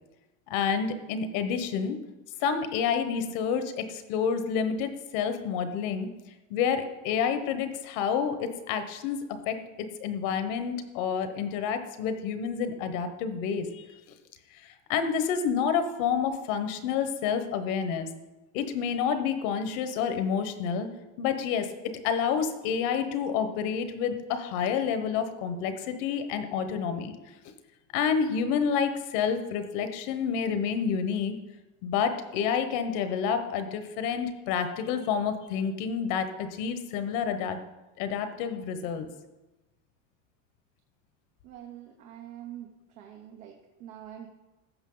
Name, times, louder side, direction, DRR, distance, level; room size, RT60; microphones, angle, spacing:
voice 1, 0.5-2.0 2.4-6.1 6.5-14.0 14.9-18.1 18.5-20.9 21.2-21.7 22.0-27.1 27.9-31.4 31.8-37.6 38.0-39.1, left 7 dB, 70° left, 9 dB, 1.2 m, -29 dB
voice 2, 41.4-42.7 43.0-44.3, right 11 dB, 90° right, 1 dB, 1.2 m, -45 dB
14.5 x 5.9 x 3.9 m, 1.1 s
supercardioid pair, 135°, 40 cm